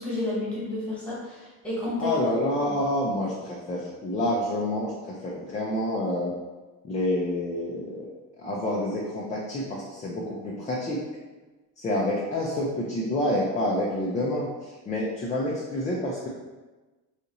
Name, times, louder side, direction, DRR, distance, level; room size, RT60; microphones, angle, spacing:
voice 1, 0.0-2.1 2.6-2.7, left 2 dB, 5° left, -8 dB, 1.3 m, -31 dB
voice 2, 2.0-4.9 5.2-6.3 6.8-8.1 8.4-11.0 11.8-14.5 14.9-16.3, left 1 dB, 20° left, -4 dB, 0.4 m, -28 dB
2.8 x 2.5 x 3.9 m, 1.2 s
cardioid pair, 140°, 36 cm